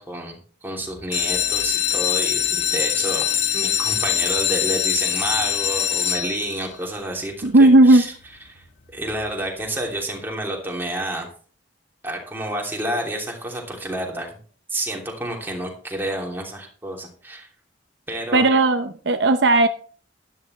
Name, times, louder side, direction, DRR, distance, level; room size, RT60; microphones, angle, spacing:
voice 1, 0.0-3.3 3.5-8.1 8.5-8.6 8.9-11.3 12.0-14.4 14.7-17.5 18.1-18.4, right 1 dB, 10° right, 0 dB, 3.0 m, -29 dB
sound 1, 1.0-6.7 7.4-7.8 8.2-8.3 8.6-8.7 9.1-9.2, left 9 dB, 75° left, 1.3 m, -23 dB
voice 2, 7.4-8.0 18.3-19.7, right 2 dB, 65° right, 8 dB, 0.8 m, -14 dB
12.5 x 11.5 x 3.3 m, 0.43 s
head